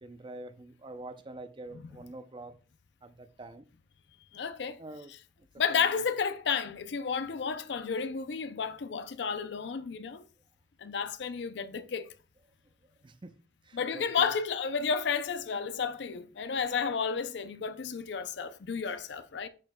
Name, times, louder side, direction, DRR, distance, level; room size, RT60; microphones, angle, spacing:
voice 1, 0.0-2.6 3.0-3.6 4.8-5.1 5.7-5.9 13.0-13.3 13.7-14.3, right 2 dB, 25° right, 0.5 m, -45 dB
voice 2, 4.3-4.8 5.6-10.2 10.8-12.1 13.7-19.5, left 6 dB, 70° left, 0.5 m, -32 dB
10.5 x 4.5 x 2.2 m
head